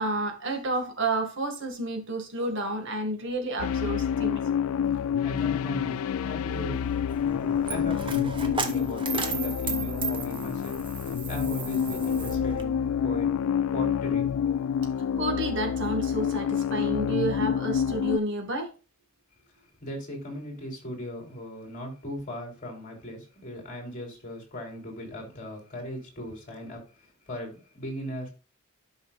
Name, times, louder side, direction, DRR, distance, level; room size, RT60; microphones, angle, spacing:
voice 1, 0.0-4.4 15.2-18.7, right 2 dB, 60° right, 1.9 m, -30 dB
sound 1, 3.6-18.2, left 8 dB, 75° left, 0.3 m, -28 dB
voice 2, 4.9-6.8 7.3-13.3 13.7-14.3 19.8-28.3, equal, 40° left, 3.3 m, -38 dB
Coin (dropping), 6.5-12.6, right 5 dB, 25° right, 0.9 m, -36 dB
12.0 x 5.6 x 2.4 m
head